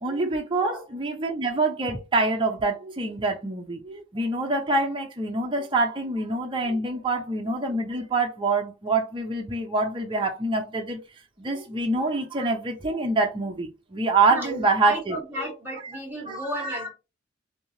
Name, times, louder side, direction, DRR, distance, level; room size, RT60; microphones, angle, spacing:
voice 1, 0.0-11.0 11.4-15.5 16.3-16.9, right 3 dB, 25° right, 0.6 m, -26 dB
voice 2, 14.3-16.9, right 1 dB, 10° right, 1.5 m, -33 dB
3.3 x 2.7 x 2.7 m
head